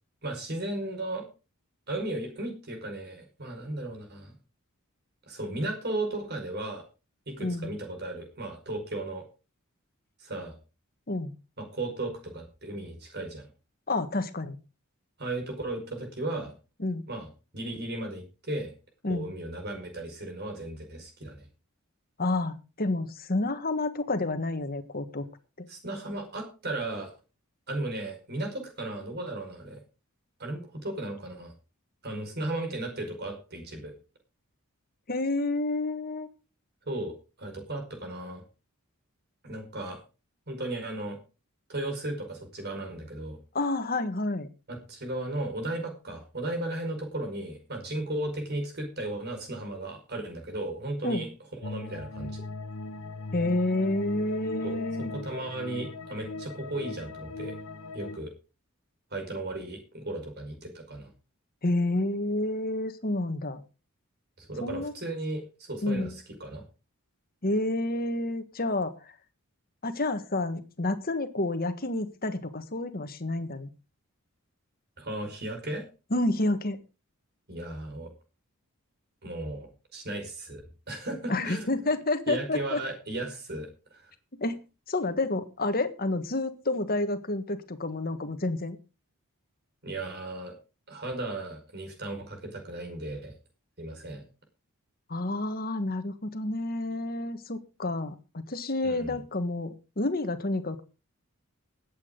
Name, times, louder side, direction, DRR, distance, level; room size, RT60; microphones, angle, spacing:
voice 1, 0.2-1.3 1.9-4.3 5.3-6.8 7.3-9.2 10.2-10.6 11.6-13.5 15.2-16.5 17.1-17.3 17.5-18.7 19.0-21.5 25.7-27.1 27.7-29.8 30.4-31.5 32.0-33.9 36.9-38.4 39.4-40.0 40.5-41.2 41.7-43.4 44.7-52.4 54.6-57.5 57.9-58.3 59.1-61.1 64.4-66.6 75.0-75.9 77.5-78.1 79.2-80.6 80.9-81.9 82.3-84.1 89.8-90.6 90.9-93.3 93.8-94.2 98.8-99.2, right 2 dB, 50° right, 4 dB, 5.2 m, -35 dB
voice 2, 7.4-7.7 11.1-11.3 13.9-14.6 16.8-17.0 19.0-19.3 22.2-25.2 25.6-25.7 35.1-36.3 43.5-44.5 51.0-51.2 53.3-55.1 61.6-63.6 64.6-64.9 65.8-66.1 67.4-68.9 69.8-73.7 76.1-76.8 81.3-82.8 84.4-84.6 84.9-88.8 95.1-98.1 98.5-100.8, left 2 dB, 45° left, 9 dB, 1.5 m, -29 dB
sound 1, 51.6-58.2, left 3 dB, 70° left, 1.1 m, -39 dB
20.5 x 8.6 x 3.9 m, 0.31 s
head